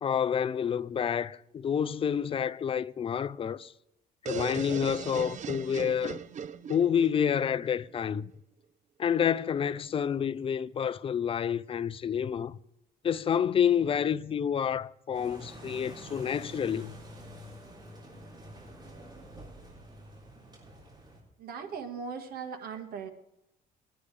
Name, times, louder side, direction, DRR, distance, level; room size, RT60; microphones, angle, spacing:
voice 1, 0.0-3.7 4.2-6.2 6.7-8.3 9.0-12.6 13.0-16.9, left 8 dB, 35° left, 0.4 m, -29 dB
sound 1, 4.3-8.0, right 8 dB, 45° right, 0.7 m, -39 dB
sound 2, 15.1-21.2, right 1 dB, 25° right, 5.8 m, -47 dB
voice 2, 21.4-23.1, right 6 dB, 65° right, 1.7 m, -38 dB
22.0 x 9.8 x 3.4 m
cardioid pair, 110°, 17 cm